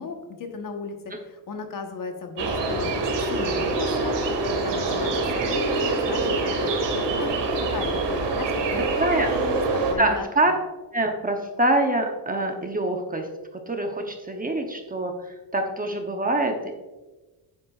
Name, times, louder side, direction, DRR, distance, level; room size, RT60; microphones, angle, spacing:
voice 1, 0.0-6.7 7.0-10.3, left 4 dB, 50° left, 4 dB, 1.2 m, -35 dB
sound 1, 2.4-9.9, right 3 dB, 75° right, 1.8 m, -25 dB
voice 2, 10.0-10.5 10.9-13.3 13.5-16.7, right 1 dB, 20° right, 3 dB, 0.8 m, -25 dB
9.3 x 8.2 x 2.4 m, 1.1 s
cardioid pair, 145°, 43 cm